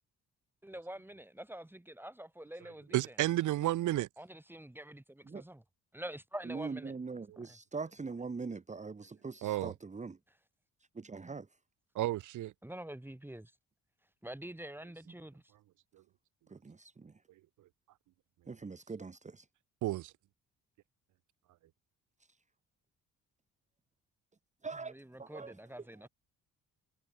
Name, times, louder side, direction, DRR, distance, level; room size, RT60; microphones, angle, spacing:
voice 1, 0.6-3.2 4.2-5.6 5.9-6.9 7.4-7.6 12.6-13.5 14.2-15.4 24.8-26.1, right 1 dB, 5° right, 2.5 m, -46 dB
voice 2, 2.9-4.1 9.4-9.7 11.9-12.5 19.8-20.1, right 15 dB, 80° right, 1.2 m, -31 dB
voice 3, 6.5-10.2 10.9-11.5 16.5-17.1 18.5-19.4 24.6-24.9 25.2-25.5, right 4 dB, 25° right, 1.6 m, -42 dB
cardioid pair, 90°, 30 cm